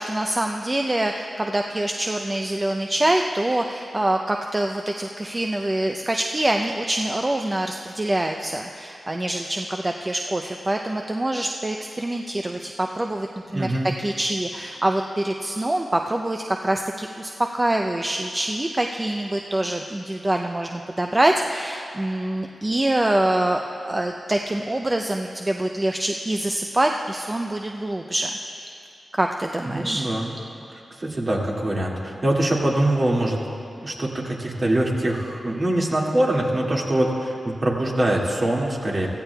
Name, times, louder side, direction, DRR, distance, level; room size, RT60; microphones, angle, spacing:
voice 1, 0.0-13.7 14.0-28.7 29.1-30.0, right 1 dB, 30° right, 3 dB, 0.5 m, -25 dB
voice 2, 13.5-13.9 29.6-30.3 30.7-33.4 33.8-39.1, right 1 dB, 55° right, -3 dB, 2.1 m, -23 dB
15.5 x 14.5 x 2.3 m, 2.7 s
cardioid pair, 40°, 0 cm